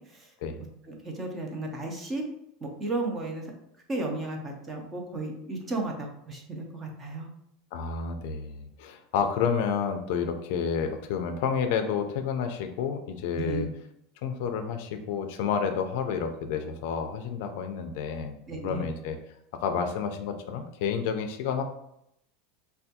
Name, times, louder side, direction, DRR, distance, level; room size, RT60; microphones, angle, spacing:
voice 1, 0.8-2.2 2.6-3.5 3.9-7.3 13.3-13.7 18.5-18.9, right 2 dB, 15° right, 1 dB, 0.5 m, -34 dB
voice 2, 7.7-13.7 14.2-18.4 18.6-19.2 19.5-21.6, left 6 dB, 60° left, 6 dB, 0.4 m, -30 dB
3.3 x 2.2 x 2.7 m, 0.77 s
supercardioid pair, 170°, 0 cm